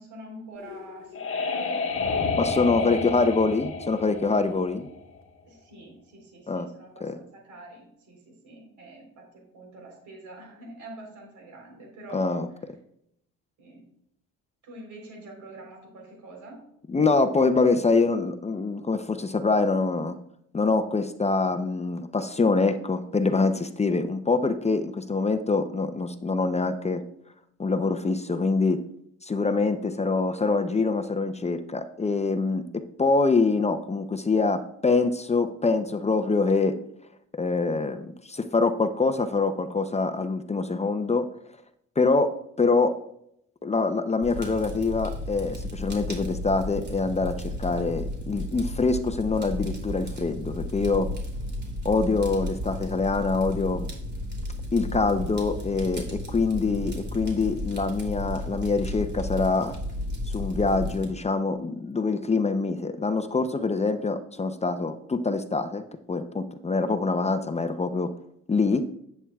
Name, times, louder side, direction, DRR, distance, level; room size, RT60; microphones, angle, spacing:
voice 1, 0.0-2.2 2.9-3.4 5.4-12.5 13.6-13.8 14.6-16.6, right 1 dB, 75° right, 0 dB, 3.8 m, -45 dB
sound 1, 0.6-5.2, left 4 dB, 45° left, 1.4 m, -30 dB
voice 2, 2.4-4.9 6.5-6.7 7.0-7.2 12.1-12.5 16.9-20.2 20.5-27.0 27.6-28.8 29.2-32.6 33.0-36.7 37.3-41.3 42.0-42.3 42.6-42.9 43.6-51.1 51.8-53.9 54.7-59.8 60.3-68.1 68.5-68.8, left 3 dB, 20° left, 8 dB, 0.6 m, -25 dB
Fire, 44.2-61.1, left 1 dB, 35° right, 2.8 m, -34 dB
10.5 x 8.5 x 2.3 m, 0.74 s
cardioid pair, 90°, 30 cm